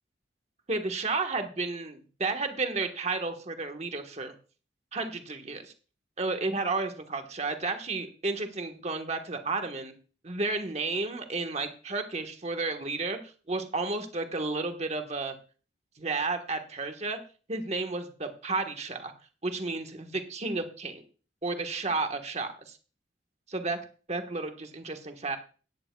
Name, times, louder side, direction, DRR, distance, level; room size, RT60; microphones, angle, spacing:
voice 1, 0.7-4.3 4.9-5.7 6.2-9.9 10.2-13.2 13.5-15.3 16.0-17.2 17.5-19.1 19.4-21.0 21.4-22.8 23.5-23.8 24.1-25.4, right 3 dB, 35° right, 6 dB, 1.3 m, -32 dB
17.0 x 9.9 x 2.3 m, 0.37 s
head